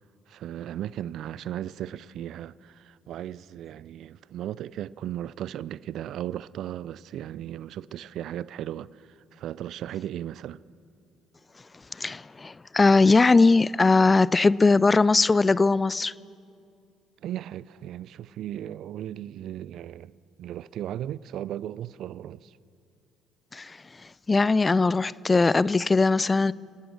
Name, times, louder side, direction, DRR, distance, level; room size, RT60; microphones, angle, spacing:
voice 1, 0.3-10.6 17.2-20.1 20.4-22.6, right 11 dB, 60° right, 0.4 m, -36 dB
voice 2, 11.9-16.1 23.5-23.8 24.3-26.5, left 3 dB, 25° left, 0.4 m, -20 dB
29.5 x 18.0 x 6.6 m
hypercardioid pair, 50°, 0 cm